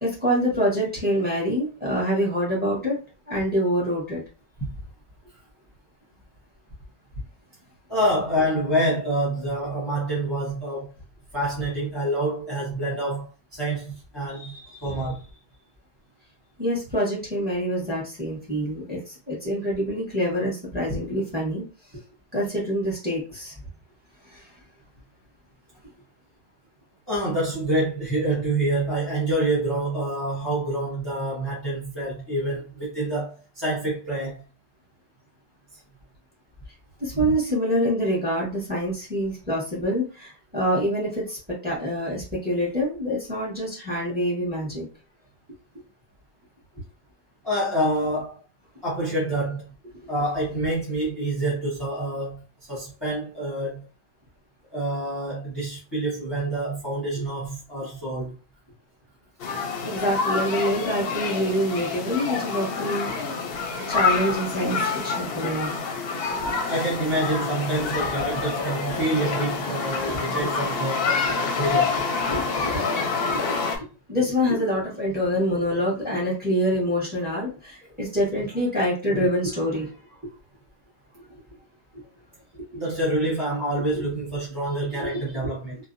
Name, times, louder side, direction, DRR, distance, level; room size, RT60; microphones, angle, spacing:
voice 1, 0.0-3.0 3.3-4.2 14.3-15.0 16.6-21.6 22.3-23.5 24.3-24.5 37.0-41.4 41.6-44.9 59.8-63.1 63.9-65.7 70.0-70.2 72.3-80.0 81.9-82.0 83.9-84.0 85.0-85.2, equal, 10° right, 1.1 m, -26 dB
voice 2, 7.9-10.9 11.3-14.6 14.8-15.2 20.9-21.0 27.1-34.4 37.2-37.3 47.4-48.4 48.8-49.7 50.1-52.4 52.7-53.9 54.7-58.4 66.7-71.1 71.4-71.9 82.7-85.8, right 1 dB, 25° left, 0.8 m, -27 dB
sound 1, 59.4-73.8, left 4 dB, 65° left, 0.7 m, -27 dB
2.6 x 2.1 x 2.5 m
omnidirectional pair, 1.1 m